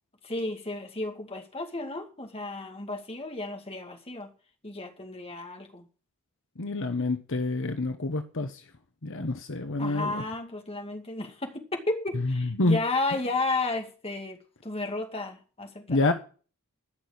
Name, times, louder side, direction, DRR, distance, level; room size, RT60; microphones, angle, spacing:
voice 1, 0.2-4.3 4.6-5.9 9.8-14.4 14.6-16.1, left 2 dB, 25° left, 2.3 m, -33 dB
voice 2, 6.6-8.6 9.0-10.2 12.2-12.8 15.9-16.1, left 2 dB, 60° left, 1.1 m, -27 dB
14.5 x 6.2 x 8.7 m
head